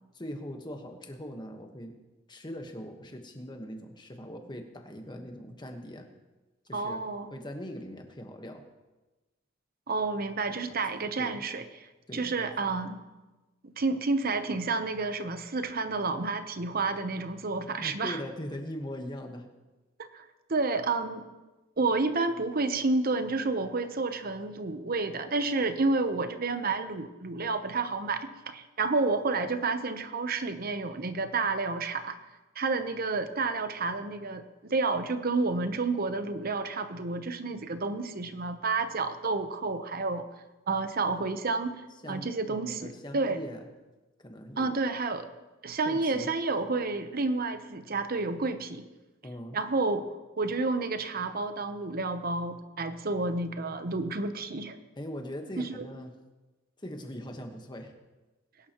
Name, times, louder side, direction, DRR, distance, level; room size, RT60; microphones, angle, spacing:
voice 1, 0.1-2.0 2.3-6.1 6.6-7.0 7.3-8.6 10.4-10.5 11.2-11.4 12.1-12.5 17.7-19.5 42.0-43.7 44.2-44.8 45.8-46.3 49.2-49.6 54.9-56.1 56.8-57.9, equal, 20° left, 4 dB, 1.3 m, -41 dB
voice 2, 6.7-7.3 9.9-11.6 12.1-13.0 13.6-18.2 20.0-21.3 21.8-32.2 32.6-34.4 34.7-40.3 40.7-41.8 42.1-43.4 44.6-45.3 45.6-48.8 49.5-54.8 55.6-55.9, right 3 dB, 45° right, 9 dB, 0.9 m, -30 dB
21.5 x 11.0 x 3.0 m, 1.1 s
head